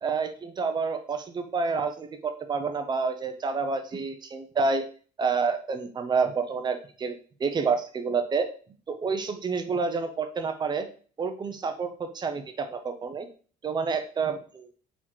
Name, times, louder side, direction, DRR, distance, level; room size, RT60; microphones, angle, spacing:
voice 1, 0.0-4.8 5.2-7.1 7.4-8.5 8.9-10.9 11.2-13.3 13.6-14.7, right 4 dB, 25° right, 7 dB, 0.5 m, -28 dB
4.1 x 3.0 x 2.9 m, 0.41 s
cardioid pair, 110°, 17 cm